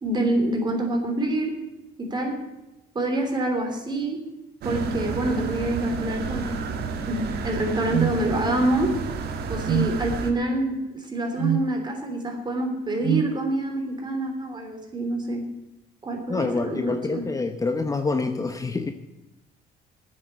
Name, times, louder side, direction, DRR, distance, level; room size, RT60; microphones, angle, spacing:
voice 1, 0.0-1.6 2.0-2.4 2.9-4.2 4.6-6.6 7.1-9.0 9.5-15.4 16.0-17.2, right 1 dB, 25° right, 3 dB, 3.3 m, -26 dB
sound 1, 4.6-10.3, right 5 dB, 70° right, 1.5 m, -31 dB
sound 2, 7.9-8.2 9.6-10.0 11.4-11.7 13.0-13.3, right 12 dB, 50° right, 0.4 m, -24 dB
voice 2, 16.3-18.9, left 3 dB, 20° left, 6 dB, 0.9 m, -26 dB
9.8 x 8.1 x 9.5 m, 0.97 s
cardioid pair, 110°, 17 cm